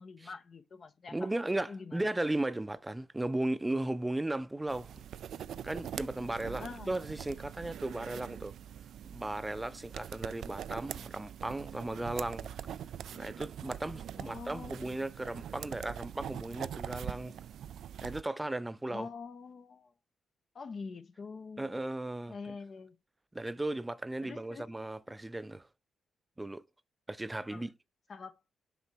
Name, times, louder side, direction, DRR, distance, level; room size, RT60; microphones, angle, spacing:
voice 1, 0.0-1.2 1.7-2.0 6.5-6.9 14.2-14.9 18.9-19.9 20.5-21.8 22.3-23.0 24.2-24.7 27.5-27.7 28.1-28.4, left 4 dB, 50° left, 0.7 m, -45 dB
voice 2, 1.1-5.0 5.6-8.5 9.1-12.5 13.2-17.3 18.0-19.1 21.6-22.6 23.3-25.7 26.4-26.6 27.1-27.7, right 1 dB, 15° right, 0.6 m, -36 dB
sound 1, 4.7-18.2, right 9 dB, 75° right, 0.3 m, -43 dB
6.7 x 4.5 x 4.5 m
cardioid pair, 70°, 0 cm